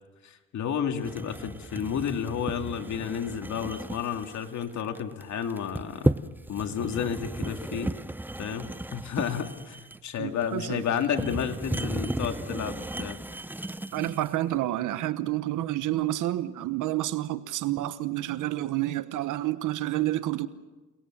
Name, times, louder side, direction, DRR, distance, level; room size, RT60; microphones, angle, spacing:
voice 1, 0.2-6.1 6.5-7.9 8.4-9.8 10.0-13.2, left 8 dB, 70° left, 2.3 m, -31 dB
sound 1, 1.0-14.3, right 1 dB, 5° right, 0.7 m, -34 dB
voice 2, 10.2-10.8 13.9-20.5, right 14 dB, 85° right, 1.2 m, -29 dB
29.0 x 20.0 x 7.4 m
cardioid pair, 90°, 30 cm